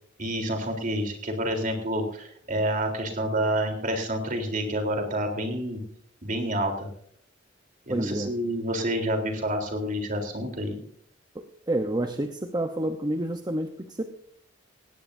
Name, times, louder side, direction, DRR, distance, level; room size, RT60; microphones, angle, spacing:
voice 1, 0.2-5.8 6.2-6.9 7.9-10.8, right 1 dB, 45° right, 4 dB, 3.7 m, -28 dB
voice 2, 7.9-8.3 11.3-14.0, right 1 dB, 20° right, 6 dB, 0.9 m, -29 dB
18.5 x 17.0 x 2.7 m, 0.66 s
head